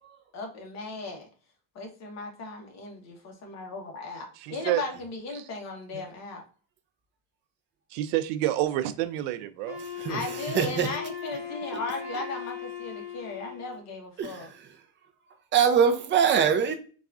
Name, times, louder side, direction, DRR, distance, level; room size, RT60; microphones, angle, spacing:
voice 1, 0.3-1.3 1.7-6.4 10.1-14.5, left 3 dB, 40° left, 2 dB, 1.0 m, -37 dB
voice 2, 4.4-4.8 5.3-5.4 5.9-6.0 7.9-9.8, right 14 dB, 90° right, 12 dB, 0.5 m, -28 dB
Wind instrument woodwind instrument, 9.7-13.8, left 8 dB, 10° left, 1.6 m, -38 dB
voice 3, 10.5-10.9 14.2-14.4 15.5-16.7, right 7 dB, 30° right, 6 dB, 0.4 m, -22 dB
4.0 x 2.4 x 2.4 m, 0.39 s
cardioid pair, 135°, 42 cm